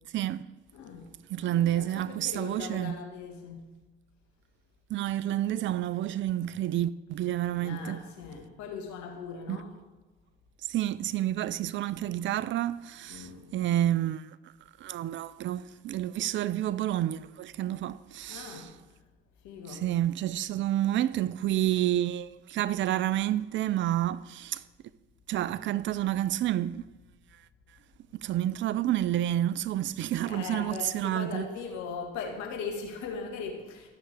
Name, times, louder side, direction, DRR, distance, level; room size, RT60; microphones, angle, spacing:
voice 1, 0.1-0.4 1.3-3.0 4.9-8.0 9.5-9.6 10.7-14.3 14.8-18.7 19.7-24.6 25.3-26.8 28.1-31.5, right 12 dB, 40° right, 0.4 m, -29 dB
voice 2, 0.7-1.1 1.4-3.7 7.4-9.8 13.1-13.5 18.3-18.7 19.4-19.9 30.2-33.9, left 5 dB, 70° left, 1.6 m, -39 dB
13.5 x 5.7 x 3.4 m
hypercardioid pair, 55°, 30 cm